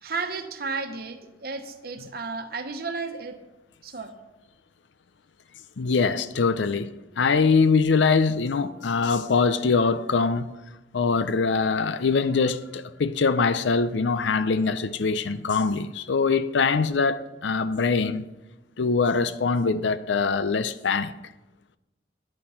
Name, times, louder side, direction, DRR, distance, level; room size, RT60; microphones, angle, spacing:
voice 1, 0.0-3.4 3.8-4.1, right 4 dB, 55° right, 1.1 m, -33 dB
voice 2, 5.8-10.5 10.9-18.2 18.8-21.1, left 4 dB, 80° left, 0.5 m, -23 dB
11.0 x 8.6 x 5.7 m
head